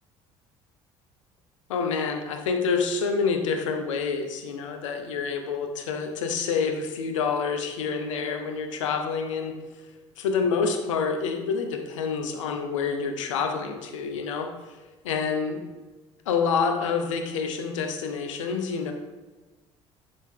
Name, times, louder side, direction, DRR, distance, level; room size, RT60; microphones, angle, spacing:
voice 1, 1.7-9.5 10.2-14.5 15.0-15.6 16.3-18.9, left 5 dB, 80° left, 5 dB, 0.9 m, -27 dB
11.0 x 4.0 x 3.6 m, 1.2 s
figure-of-eight pair, 60°, 16 cm